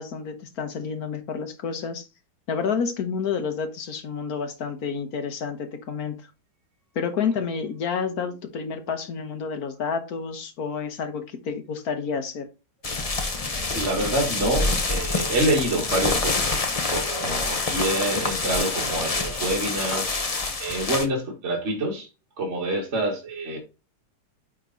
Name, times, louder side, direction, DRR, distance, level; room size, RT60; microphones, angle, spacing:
voice 1, 0.0-2.1 2.5-6.1 6.9-12.5, left 6 dB, 60° left, 8 dB, 1.3 m, -29 dB
sound 1, 12.8-21.1, left 3 dB, 35° left, 0.6 m, -26 dB
voice 2, 13.7-16.6 16.9-20.2 20.6-22.1 22.4-23.6, right 1 dB, 40° right, -1 dB, 1.8 m, -27 dB
9.2 x 3.7 x 3.9 m, 0.28 s
omnidirectional pair, 1.9 m